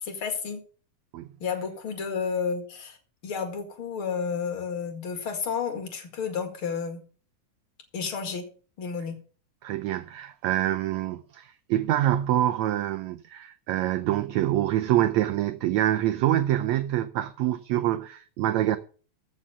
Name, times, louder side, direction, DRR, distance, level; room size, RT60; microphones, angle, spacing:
voice 1, 0.0-0.6 1.4-3.0 3.2-7.0 7.9-8.4 8.8-9.2, left 6 dB, 45° left, 2.4 m, -31 dB
voice 2, 9.6-18.8, right 13 dB, 85° right, 1.5 m, -26 dB
14.5 x 5.7 x 6.8 m
omnidirectional pair, 3.9 m